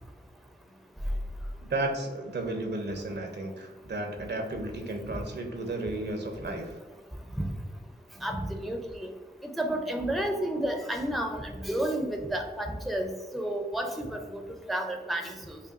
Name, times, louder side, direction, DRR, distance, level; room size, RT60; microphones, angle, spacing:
voice 1, 1.6-6.8, right 2 dB, 70° right, 3 dB, 0.7 m, -33 dB
voice 2, 8.2-9.1 9.4-15.6, right 1 dB, ahead, 4 dB, 0.5 m, -31 dB
5.2 x 2.3 x 2.5 m, 1.3 s
wide cardioid pair, 60°, 18 cm